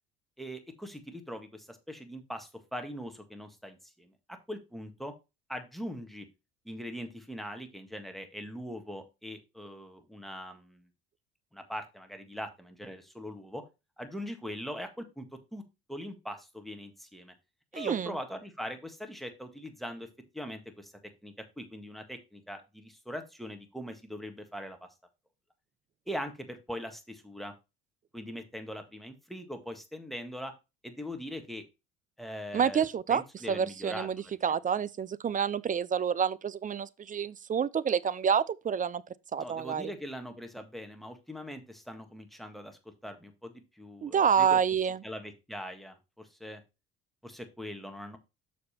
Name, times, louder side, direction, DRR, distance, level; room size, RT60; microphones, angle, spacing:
voice 1, 0.4-4.1 4.5-5.1 5.5-6.3 6.6-10.9 11.5-13.6 14.0-15.2 15.5-15.6 15.9-17.3 17.7-20.1 20.3-20.9 21.2-24.9 26.1-27.5 28.1-30.5 30.8-31.6 32.2-34.6 39.4-44.6 45.0-46.6 47.2-48.2, equal, ahead, 1.7 m, -41 dB
voice 2, 17.7-18.1 32.5-39.0 39.3-39.9 44.0-45.0, right 7 dB, 30° right, 0.5 m, -28 dB
6.7 x 5.3 x 4.3 m
supercardioid pair, 80°, 29 cm